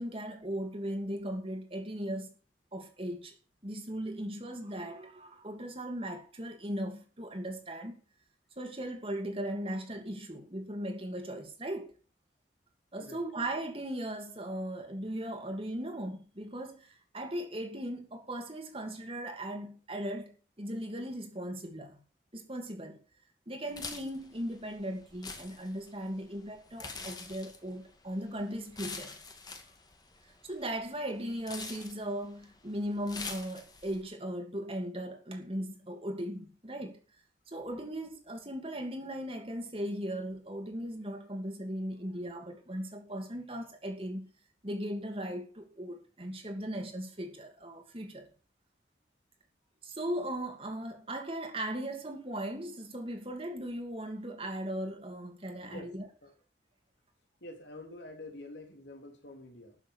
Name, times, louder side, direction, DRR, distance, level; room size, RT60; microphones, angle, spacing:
voice 1, 0.0-2.3 2.7-3.3 3.6-7.9 8.6-11.9 12.9-22.0 22.3-23.0 23.5-29.2 30.4-37.0 37.5-44.2 44.6-48.3 49.8-56.1, right 1 dB, 30° right, 2.8 m, -38 dB
sound 1, 23.7-34.0, left 4 dB, 25° left, 2.1 m, -46 dB
voice 2, 57.4-59.8, left 2 dB, 80° left, 3.5 m, -47 dB
12.5 x 7.3 x 7.2 m
head